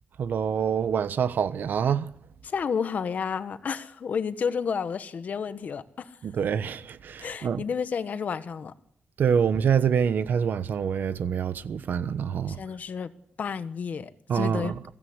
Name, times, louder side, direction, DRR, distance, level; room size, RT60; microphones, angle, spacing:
voice 1, 0.2-2.1 6.2-7.6 9.2-12.6 14.3-14.8, right 7 dB, 65° right, 1.2 m, -26 dB
voice 2, 2.4-6.2 7.2-8.7 12.5-15.0, left 6 dB, 50° left, 1.4 m, -31 dB
22.5 x 16.5 x 9.6 m
wide cardioid pair, 175°, 3 cm